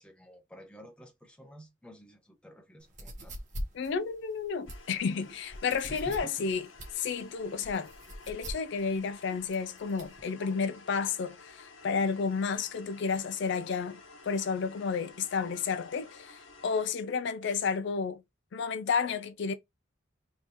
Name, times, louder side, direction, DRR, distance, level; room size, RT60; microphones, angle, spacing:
voice 1, 0.0-3.3 5.9-6.5, equal, 5° left, 0.8 m, -51 dB
sound 1, 2.8-10.2, equal, 40° right, 1.1 m, -43 dB
voice 2, 3.7-6.7 6.9-7.9 8.3-14.0 14.3-18.2 18.5-19.5, left 5 dB, 60° left, 0.4 m, -31 dB
sound 2, 4.7-16.9, left 4 dB, 75° left, 1.3 m, -53 dB
3.4 x 2.9 x 4.0 m
head